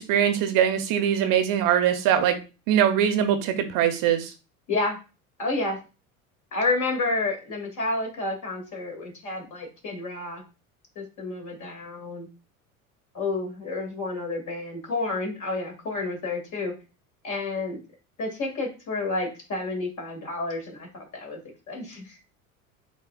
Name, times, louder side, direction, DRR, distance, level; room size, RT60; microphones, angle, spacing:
voice 1, 0.0-2.4 2.7-4.3, right 9 dB, 50° right, 8 dB, 0.8 m, -22 dB
voice 2, 5.4-5.8 6.5-10.4 11.0-12.3 13.1-16.7 17.2-17.8 18.2-21.4 21.7-22.3, left 3 dB, 45° left, 1 dB, 2.4 m, -30 dB
7.8 x 2.8 x 2.4 m, 0.31 s
hypercardioid pair, 80°, 42 cm